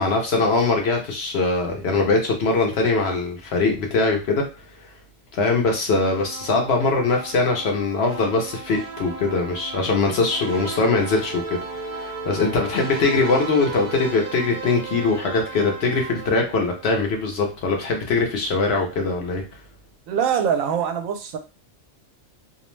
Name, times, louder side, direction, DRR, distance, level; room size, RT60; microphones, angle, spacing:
voice 1, 0.0-4.5 5.3-11.4 11.9-19.4, left 3 dB, 60° left, 2 dB, 0.8 m, -22 dB
sound 1, 6.0-17.2, right 3 dB, 50° right, 0.5 m, -35 dB
voice 2, 20.1-21.4, right 8 dB, 80° right, 6 dB, 1.0 m, -23 dB
2.5 x 2.0 x 3.0 m, 0.30 s
omnidirectional pair, 1.4 m